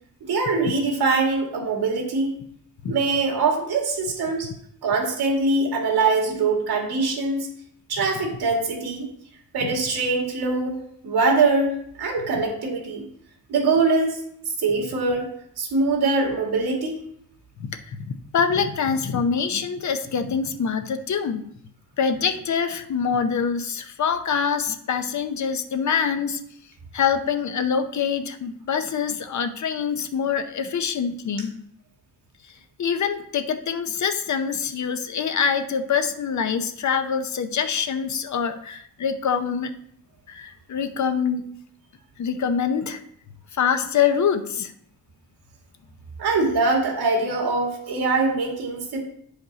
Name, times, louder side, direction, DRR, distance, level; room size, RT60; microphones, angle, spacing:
voice 1, 0.2-2.3 2.9-4.5 4.8-7.5 7.9-9.1 9.5-10.8 11.0-11.7 12.0-13.0 13.5-14.2 14.6-15.3 15.6-17.0 46.2-49.0, right 3 dB, 90° right, 0 dB, 2.2 m, -23 dB
voice 2, 17.6-21.4 22.0-26.4 26.9-31.5 32.8-39.7 40.3-41.4 42.2-43.0 43.5-44.7, left 6 dB, 50° left, 9 dB, 0.7 m, -25 dB
9.2 x 5.1 x 4.0 m, 0.69 s
cardioid pair, 120°, 37 cm